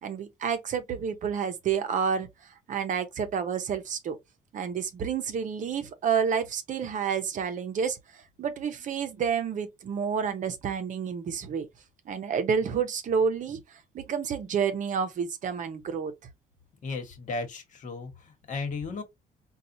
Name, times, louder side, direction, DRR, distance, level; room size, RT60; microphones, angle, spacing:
voice 1, 0.0-2.3 2.7-4.2 4.5-8.0 8.4-11.7 12.1-13.6 13.9-16.1, right 7 dB, 50° right, 0.7 m, -29 dB
voice 2, 16.8-19.0, left 3 dB, 50° left, 1.3 m, -35 dB
4.1 x 2.3 x 2.7 m
cardioid pair, 110°, 17 cm